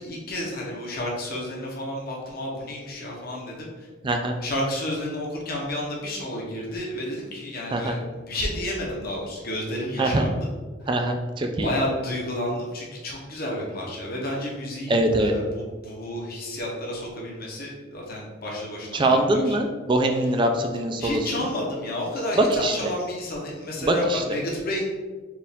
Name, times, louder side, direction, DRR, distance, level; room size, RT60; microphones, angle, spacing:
voice 1, 0.0-3.9 4.4-10.3 11.6-19.2 19.4-19.6 21.0-24.8, left 1 dB, 45° left, -3 dB, 0.8 m, -31 dB
voice 2, 4.0-4.3 7.7-8.0 10.0-10.2 10.9-11.7 14.9-15.3 18.9-21.5 22.4-22.7 23.8-24.2, right 1 dB, 25° right, 4 dB, 0.3 m, -23 dB
4.5 x 2.5 x 3.5 m, 1.3 s
head